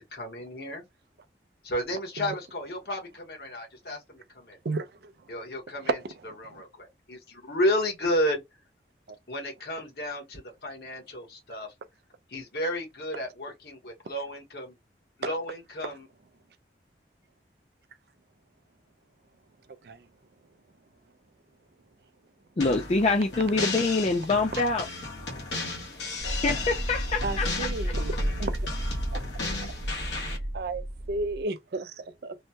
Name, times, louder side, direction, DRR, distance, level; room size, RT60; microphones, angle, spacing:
voice 1, 0.1-0.8 1.6-4.6 5.3-6.0 6.4-8.4 9.3-11.7 12.3-14.7 15.2-16.1, equal, 65° left, 1.2 m, -32 dB
voice 2, 4.6-5.1 5.8-6.0 6.3-6.6 15.2-15.3 19.8-20.0 27.2-28.1 28.4-28.5 29.1-29.2 30.5-32.4, right 3 dB, 65° right, 0.4 m, -32 dB
sound 1, 22.6-30.4, left 3 dB, 85° left, 1.1 m, -35 dB
voice 3, 22.6-24.9 26.4-27.9 30.1-30.4, left 3 dB, 35° left, 0.4 m, -26 dB
sound 2, 26.2-31.4, right 1 dB, 30° right, 0.8 m, -32 dB
3.1 x 2.2 x 2.7 m
head